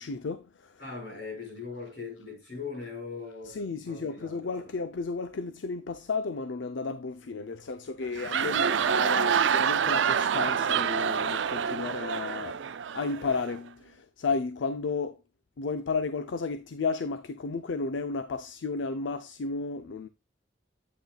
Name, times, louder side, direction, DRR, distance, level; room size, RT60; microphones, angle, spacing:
voice 1, 0.0-0.8 3.5-15.2 15.6-20.1, left 4 dB, 90° left, 0.5 m, -33 dB
voice 2, 0.8-3.6 3.8-4.7, left 4 dB, 65° left, 5.1 m, -40 dB
sound 1, 8.0-13.6, right 7 dB, 75° right, 0.4 m, -27 dB
8.6 x 8.0 x 2.2 m
head